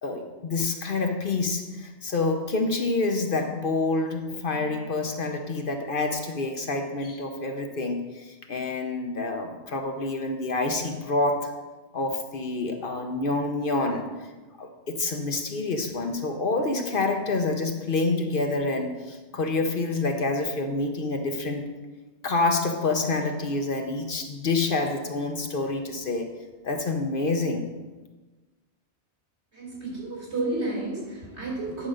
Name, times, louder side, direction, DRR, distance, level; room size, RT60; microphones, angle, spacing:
voice 1, 0.0-11.5 11.9-14.3 14.6-21.7 22.2-26.3 26.6-27.7, left 3 dB, 55° left, 4 dB, 1.0 m, -27 dB
voice 2, 29.5-31.9, right 2 dB, 70° right, -5 dB, 3.8 m, -31 dB
9.8 x 4.9 x 6.5 m, 1.2 s
omnidirectional pair, 1.2 m